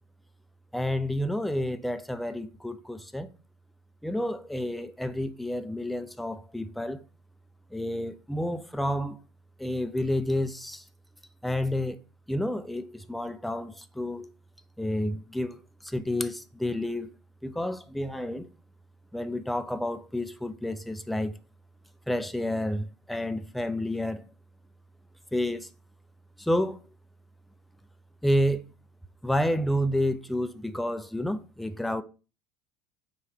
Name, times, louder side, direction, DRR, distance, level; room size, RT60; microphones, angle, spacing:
voice 1, 0.7-3.3 4.0-7.0 7.7-9.2 9.6-10.8 11.4-12.0 12.3-14.3 14.8-15.6 15.8-17.1 17.4-18.5 19.1-21.3 22.1-24.2 25.3-25.7 26.4-26.8 28.2-28.6 29.2-32.0, left 1 dB, ahead, 0.3 m, -30 dB
4.4 x 2.3 x 4.2 m
figure-of-eight pair, 70°, 15 cm